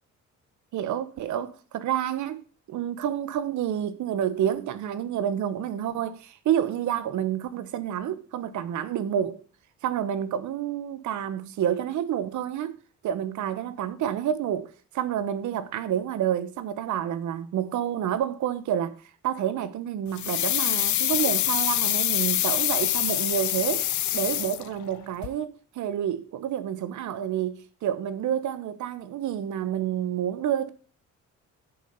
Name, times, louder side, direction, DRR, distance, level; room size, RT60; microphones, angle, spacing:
voice 1, 0.7-9.4 9.8-12.8 13.0-19.0 19.2-30.7, right 10 dB, 75° right, 1.0 m, -29 dB
sound 1, 20.2-25.0 25.2-25.3, left 14 dB, 70° left, 0.6 m, -25 dB
9.8 x 5.5 x 5.4 m
cardioid pair, 90°, 30 cm